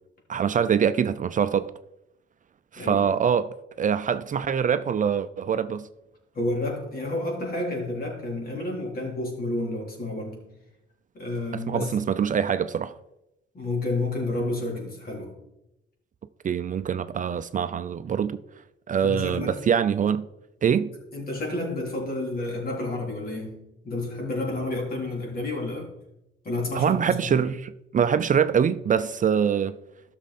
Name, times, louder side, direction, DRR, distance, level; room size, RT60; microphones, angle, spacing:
voice 1, 0.3-1.7 2.7-3.5 3.8-5.9 11.5-12.9 16.4-18.4 18.9-20.3 20.6-20.9 26.7-29.8, right 7 dB, 40° right, 0.5 m, -24 dB
voice 2, 2.8-3.1 6.3-10.4 11.1-12.0 13.5-15.3 19.0-19.5 21.1-23.6 23.8-25.9 26.4-27.3, left 2 dB, 50° left, 3.7 m, -30 dB
13.0 x 6.3 x 4.2 m
cardioid pair, 90°, 20 cm